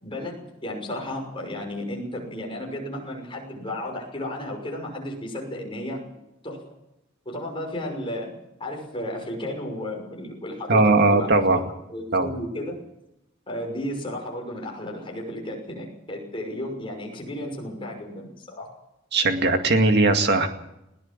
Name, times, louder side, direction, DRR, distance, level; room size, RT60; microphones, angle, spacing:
voice 1, 0.0-6.0 6.4-6.6 7.2-11.6 11.9-12.8 13.5-18.7, left 1 dB, 25° left, 0 dB, 6.0 m, -33 dB
voice 2, 10.7-11.6 12.1-12.3 19.1-20.5, right 2 dB, 55° right, 6 dB, 2.2 m, -19 dB
20.5 x 17.5 x 7.4 m, 0.86 s
head